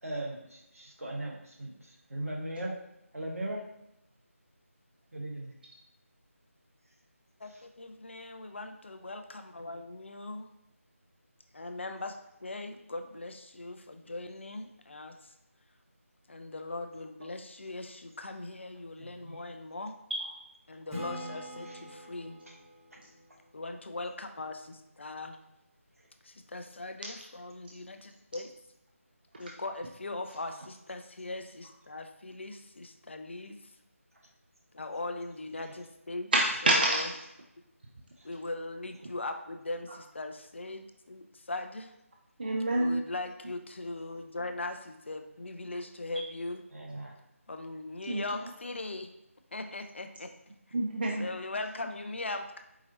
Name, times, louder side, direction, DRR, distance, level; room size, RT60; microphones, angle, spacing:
voice 1, 0.0-2.8 3.1-3.6 5.1-5.5 7.5-7.6 19.0-19.4 21.6-21.8 22.5-22.6 22.9-23.0 35.6-35.7 38.2-38.3 46.7-47.1, right 1 dB, 75° right, -1 dB, 1.0 m, -39 dB
voice 2, 7.4-10.5 11.5-15.3 16.3-20.0 20.7-22.4 23.5-25.4 26.2-28.5 29.4-33.6 34.7-36.3 36.6-37.1 38.2-41.9 42.8-46.6 47.5-49.1 49.5-50.3 51.2-52.6, left 2 dB, 55° left, 7 dB, 0.4 m, -40 dB
Acoustic guitar / Strum, 20.9-24.5, equal, ahead, 1.1 m, -45 dB
voice 3, 36.3-37.1 42.4-43.0 48.1-48.2 50.7-51.3, right 1 dB, 40° right, 0 dB, 0.3 m, -26 dB
4.7 x 2.8 x 2.7 m, 0.85 s
figure-of-eight pair, 160°, 8 cm